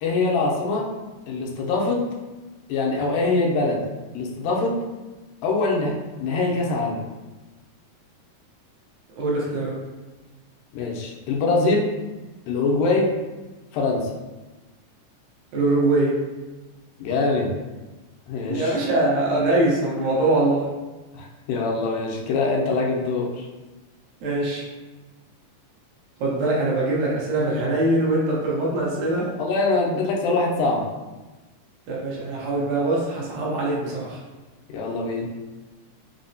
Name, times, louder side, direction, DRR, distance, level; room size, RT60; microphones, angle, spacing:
voice 1, 0.0-0.9 1.3-2.0 2.7-3.8 4.1-4.8 5.4-7.0 10.7-11.9 12.5-13.1 13.7-14.1 17.0-17.5 18.3-18.7 21.1-23.5 29.4-30.9 34.7-35.3, left 3 dB, 90° left, -1 dB, 2.3 m, -23 dB
voice 2, 9.2-9.8 15.5-16.2 18.5-20.7 24.2-24.6 26.2-29.3 31.9-34.2, right 2 dB, 75° right, -5 dB, 2.0 m, -22 dB
5.6 x 2.0 x 2.6 m, 1.2 s
omnidirectional pair, 3.8 m